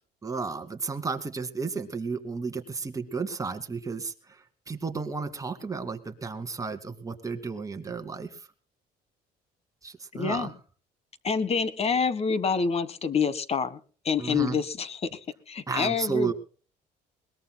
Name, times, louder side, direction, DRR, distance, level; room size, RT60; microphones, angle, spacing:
voice 1, 0.2-8.5 9.8-10.5 14.2-14.6 15.7-16.3, right 4 dB, 20° right, 5 dB, 2.3 m, -33 dB
voice 2, 10.1-10.5 11.2-13.8 14.0-15.2 15.5-16.3, left 5 dB, 40° left, 16 dB, 1.4 m, -27 dB
21.5 x 20.5 x 2.2 m, 0.40 s
cardioid pair, 110°, 17 cm